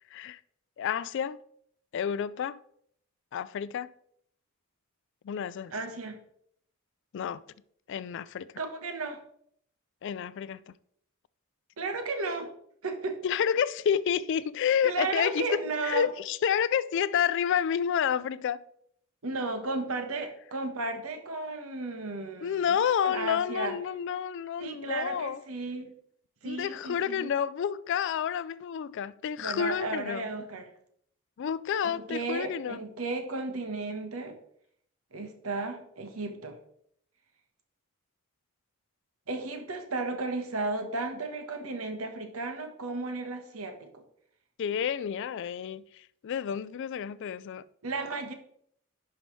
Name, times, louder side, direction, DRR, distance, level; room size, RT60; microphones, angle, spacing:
voice 1, 0.8-1.4 1.9-2.6 3.3-3.9 5.2-5.7 7.1-7.4 7.9-8.5 10.0-10.6 13.2-18.6 22.4-25.4 26.4-30.3 31.4-32.8 44.6-47.7, left 8 dB, 60° left, 0.3 m, -29 dB
voice 2, 5.7-6.2 8.6-9.2 11.8-12.5 12.8-13.2 14.8-16.1 19.2-22.8 23.0-23.8 24.6-25.9 26.4-27.3 29.4-30.7 31.8-34.4 35.1-36.6 39.3-44.0 47.8-48.3, right 3 dB, 80° right, 1.2 m, -34 dB
10.5 x 5.7 x 3.2 m
head